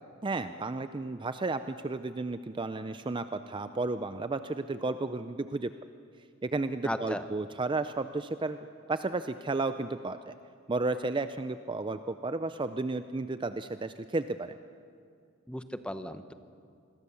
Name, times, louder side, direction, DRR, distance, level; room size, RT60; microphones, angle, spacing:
voice 1, 0.2-5.7 6.4-8.6 8.9-10.3 10.7-14.5, right 3 dB, 20° right, 10 dB, 0.5 m, -33 dB
voice 2, 6.8-7.2 15.5-16.3, left 1 dB, 5° left, 10 dB, 0.9 m, -36 dB
27.0 x 21.5 x 7.0 m, 2.4 s
head